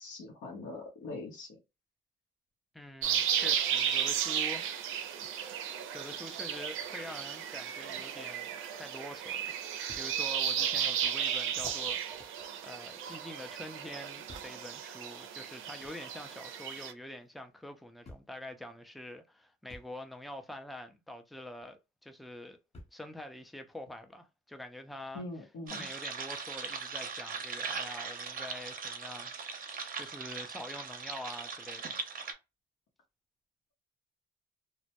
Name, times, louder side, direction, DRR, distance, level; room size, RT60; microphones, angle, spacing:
voice 1, 0.0-1.6 25.1-25.8, left 2 dB, 75° left, 0.8 m, -42 dB
voice 2, 2.7-5.1 5.9-9.6 9.9-12.3 12.6-22.6 22.9-25.2 25.7-32.1, left 1 dB, ahead, 0.4 m, -46 dB
sound 1, 3.0-16.9, right 9 dB, 90° right, 0.4 m, -34 dB
sound 2, 9.9-10.1 10.7-10.8 11.5-13.4 14.3-14.6 15.8-16.0 17.2-17.3 18.0-18.4 19.7-19.9 21.6-21.7 22.7-23.1 23.9-24.0, left 2 dB, 30° left, 0.7 m, -52 dB
sound 3, 25.7-32.3, right 5 dB, 45° right, 0.6 m, -40 dB
2.1 x 2.1 x 2.8 m
cardioid pair, 90°, 20 cm